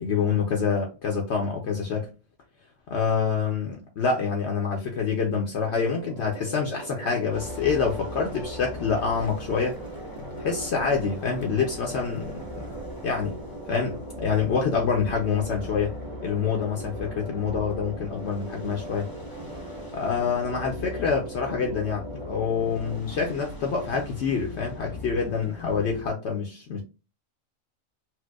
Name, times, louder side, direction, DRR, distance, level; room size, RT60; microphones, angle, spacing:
voice 1, 0.0-2.1 2.9-9.8 10.4-12.4 13.0-13.4 13.7-19.1 19.9-26.8, left 5 dB, 65° left, 0.8 m, -26 dB
sound 1, 5.6-23.0, right 3 dB, 85° right, 0.3 m, -40 dB
sound 2, 7.3-26.1, left 3 dB, 25° left, 0.5 m, -40 dB
4.5 x 2.0 x 2.3 m
omnidirectional pair, 1.3 m